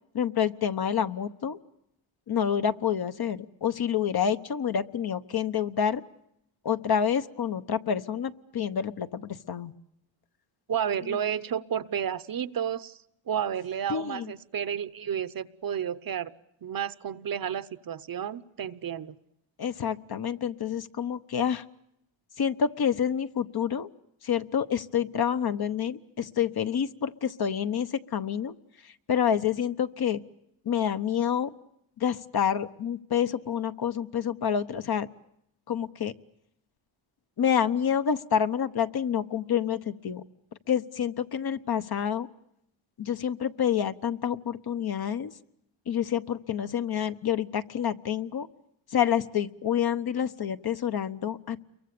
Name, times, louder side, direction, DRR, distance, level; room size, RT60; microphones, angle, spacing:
voice 1, 0.1-1.6 2.3-6.0 6.6-9.7 13.9-14.3 19.6-21.6 22.4-23.9 24.2-28.5 28.8-30.2 30.6-31.5 32.0-35.1 35.7-36.1 37.4-40.2 40.7-42.3 43.0-45.3 45.9-48.5 48.9-51.6, left 8 dB, 50° left, 10 dB, 1.2 m, -28 dB
voice 2, 10.7-13.0 13.3-16.3 16.6-19.1, right 8 dB, 45° right, 15 dB, 0.9 m, -31 dB
29.0 x 23.5 x 6.8 m, 0.77 s
cardioid pair, 105°, 49 cm